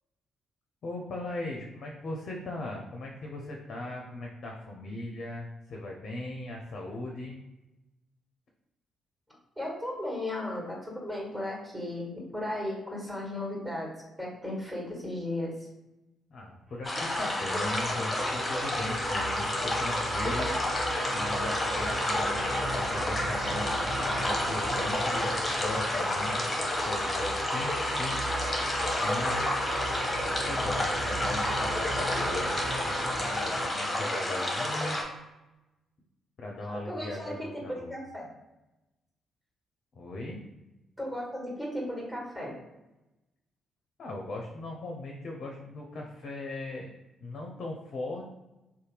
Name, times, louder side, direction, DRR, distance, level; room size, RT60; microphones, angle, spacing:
voice 1, 0.8-7.4 16.3-28.3 29.0-29.6 30.5-32.6 32.8-35.0 36.4-37.9 39.9-40.4 44.0-46.9 47.2-48.3, left 2 dB, 55° left, 0 dB, 0.5 m, -38 dB
voice 2, 9.6-13.9 14.2-15.6 31.0-31.1 36.7-38.3 41.0-42.5, left 1 dB, 10° right, -3 dB, 1.4 m, -35 dB
sound 1, 16.8-35.0, left 1 dB, 25° left, 0.8 m, -30 dB
sound 2, 16.9-33.7, right 1 dB, 45° right, 1.1 m, -36 dB
2.7 x 2.1 x 3.2 m, 0.98 s
hypercardioid pair, 45°, 0 cm